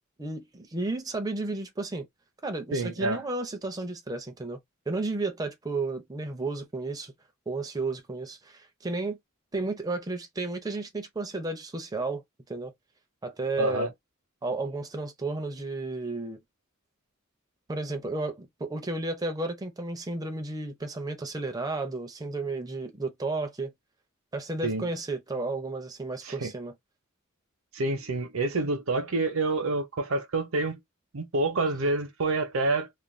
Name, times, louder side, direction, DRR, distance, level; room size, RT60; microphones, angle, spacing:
voice 1, 0.2-2.1 2.4-4.6 4.9-7.1 7.5-9.2 9.5-12.2 12.5-12.7 13.2-13.9 14.4-16.4 17.7-23.7 24.3-26.7, right 3 dB, 15° right, 0.5 m, -33 dB
voice 2, 2.7-3.2 13.6-13.9 24.6-24.9 26.2-26.5 27.7-30.8 31.1-32.9, right 2 dB, 70° right, 0.7 m, -28 dB
2.5 x 2.2 x 3.1 m
head